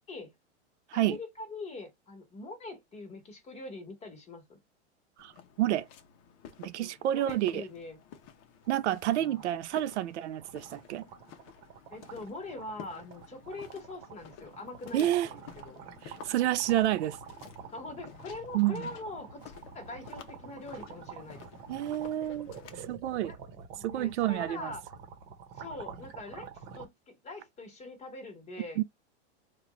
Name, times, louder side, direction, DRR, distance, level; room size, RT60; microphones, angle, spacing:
voice 1, 0.9-4.6 6.8-8.0 8.9-9.4 11.9-15.3 15.6-15.8 17.7-21.5 23.3-23.4 23.7-24.8 25.5-26.5 26.7-28.8, left 2 dB, 20° left, 1.4 m, -43 dB
Walk footsteps, 5.2-22.9, left 8 dB, 40° left, 0.8 m, -52 dB
voice 2, 6.6-7.6 8.7-11.0 14.9-15.3 16.0-17.2 18.5-18.9 21.7-23.3 23.8-24.7 28.8-28.9, right 13 dB, 80° right, 0.6 m, -29 dB
sound 1, 7.8-7.9 8.2-8.3 8.6-26.9, right 7 dB, 40° right, 1.1 m, -48 dB
3.9 x 2.4 x 3.0 m
supercardioid pair, 145°, 34 cm